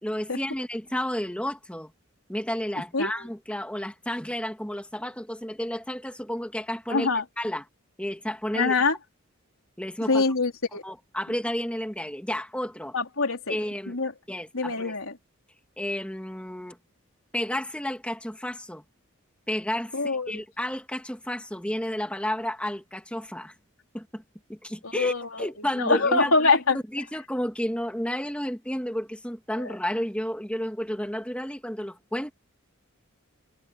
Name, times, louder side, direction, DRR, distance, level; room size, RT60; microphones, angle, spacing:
voice 1, 0.0-1.9 2.3-7.1 7.4-7.6 8.0-8.7 9.8-10.2 10.8-12.9 13.5-14.0 14.3-15.0 15.8-16.8 17.3-18.8 19.5-23.5 23.9-24.2 24.5-26.3 26.9-32.3, equal, 5° left, 2.4 m, -31 dB
voice 2, 6.9-7.2 8.5-9.0 10.1-10.8 12.9-13.6 13.9-14.1 14.5-15.1 19.9-20.4 24.8-26.8 29.6-29.7, left 3 dB, 75° left, 3.7 m, -24 dB
head